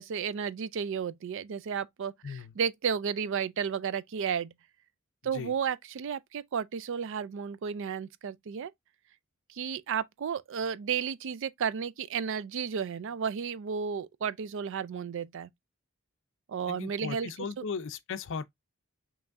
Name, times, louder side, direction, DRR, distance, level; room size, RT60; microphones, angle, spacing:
voice 1, 0.0-4.5 5.2-8.7 9.5-15.5 16.5-17.3, right 7 dB, 60° right, 0.4 m, -33 dB
voice 2, 2.2-2.5 5.2-5.5 16.7-18.4, left 5 dB, 60° left, 0.5 m, -37 dB
5.7 x 3.1 x 2.5 m
head